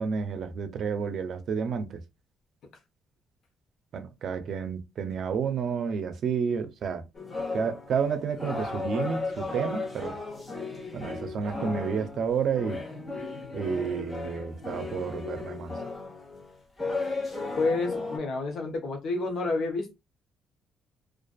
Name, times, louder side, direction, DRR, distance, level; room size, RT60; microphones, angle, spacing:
voice 1, 0.0-2.0 3.9-7.0 7.5-10.2 10.9-12.8 13.5-15.7, right 6 dB, 65° right, 0.5 m, -30 dB
sound 1, 7.1-18.2, left 3 dB, 25° left, 1.1 m, -35 dB
voice 2, 17.6-19.9, left 3 dB, 70° left, 0.9 m, -29 dB
2.4 x 2.4 x 2.3 m
cardioid pair, 90°, 0 cm